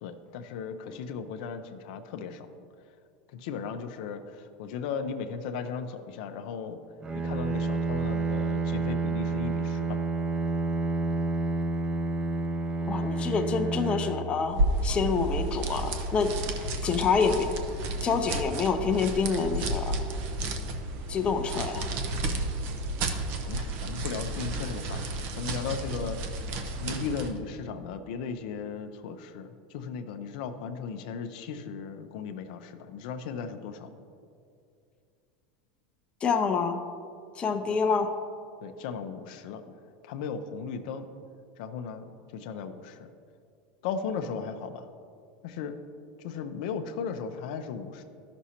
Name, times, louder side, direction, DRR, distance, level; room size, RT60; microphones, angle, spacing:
voice 1, 0.0-2.5 3.4-6.8 7.1-10.0 22.2-22.5 23.5-26.3 26.8-33.9 37.7-37.8 38.6-39.6 40.0-41.0 41.6-43.1 43.8-44.9 45.4-45.7 46.2-48.0, left 6 dB, 70° left, 7 dB, 0.5 m, -36 dB
Bowed string instrument, 7.0-15.0, right 3 dB, 20° right, 0.4 m, -29 dB
voice 2, 12.9-17.5 18.0-20.0 21.1-21.9 36.2-36.8 37.3-38.1, left 5 dB, 25° left, 5 dB, 0.6 m, -27 dB
sound 1, 14.5-27.4, right 2 dB, 55° right, 0.8 m, -32 dB
12.5 x 6.0 x 2.9 m, 2.4 s
supercardioid pair, 125°, 4 cm